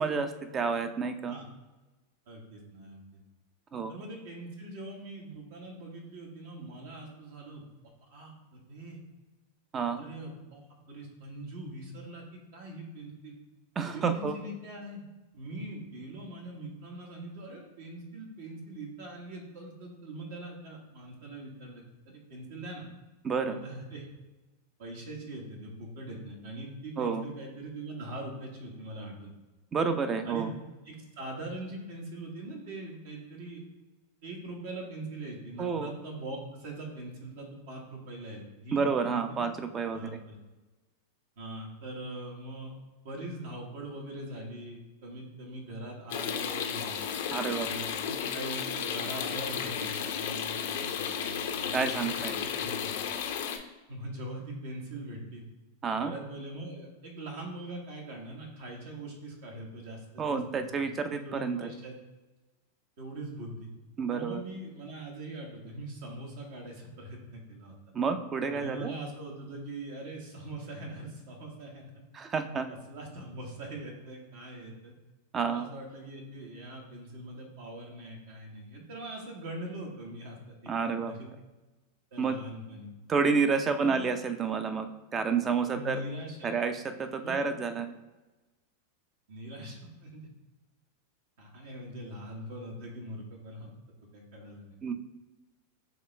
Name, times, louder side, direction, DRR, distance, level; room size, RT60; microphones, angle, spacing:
voice 1, 0.0-1.3 3.7-3.9 9.7-10.0 13.8-14.4 23.2-23.6 27.0-27.2 29.7-30.5 35.6-35.9 38.7-40.1 47.3-47.9 51.7-52.3 55.8-56.1 60.2-61.7 64.0-64.4 67.9-68.9 72.1-72.7 75.3-75.6 80.7-81.1 82.2-82.3 83.1-86.0 86.4-87.9 94.8-94.9, right 5 dB, 25° right, 8 dB, 0.5 m, -29 dB
voice 2, 2.3-3.0 3.9-9.0 9.9-13.3 13.9-15.0 15.3-22.8 23.4-24.0 24.8-29.3 30.2-30.5 30.8-33.6 34.2-39.4 39.9-40.4 41.4-42.7 43.0-47.0 47.6-53.1 53.9-55.4 56.0-60.7 61.0-62.0 63.0-63.7 64.1-67.8 68.5-71.9 72.7-74.9 75.4-81.3 82.1-82.9 83.8-84.0 85.7-86.5 87.2-87.5 89.3-90.3 91.4-93.7 94.1-94.6, right 1 dB, 70° right, -1 dB, 1.3 m, -42 dB
sound 1, 46.1-53.6, left 8 dB, 70° left, 0.7 m, -33 dB
4.9 x 3.0 x 3.3 m, 1.2 s
hypercardioid pair, 120°, 0 cm